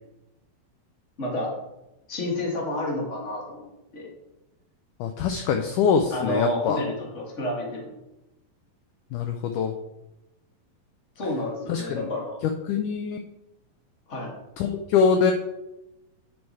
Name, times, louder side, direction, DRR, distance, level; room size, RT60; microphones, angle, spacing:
voice 1, 1.2-1.5 2.1-4.1 6.1-7.9 11.2-12.4 14.1-14.3, left 1 dB, 45° left, -2 dB, 0.9 m, -30 dB
voice 2, 5.0-6.8 9.1-9.7 11.7-12.1 12.7-13.2 14.6-15.3, left 6 dB, 90° left, 5 dB, 1.8 m, -23 dB
9.5 x 4.6 x 4.2 m, 0.94 s
omnidirectional pair, 4.2 m